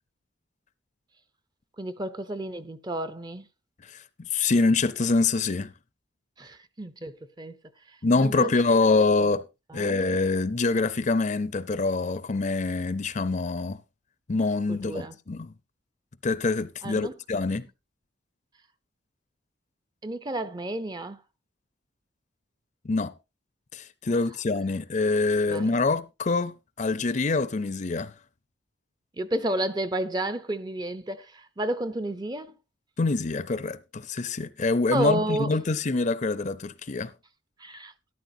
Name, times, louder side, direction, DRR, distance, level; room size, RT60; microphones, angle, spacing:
voice 1, 1.8-3.5 6.4-7.6 8.2-8.8 9.2-9.3 9.7-10.1 14.7-15.1 16.8-17.1 20.0-21.2 25.5-25.8 29.2-32.5 34.9-35.5 37.6-37.9, right 1 dB, 20° right, 0.6 m, -31 dB
voice 2, 3.8-5.7 8.0-9.5 9.7-13.8 14.3-15.5 16.2-17.7 22.8-23.1 23.7-28.1 33.0-37.1, left 3 dB, 40° left, 0.5 m, -25 dB
13.0 x 11.0 x 2.7 m
head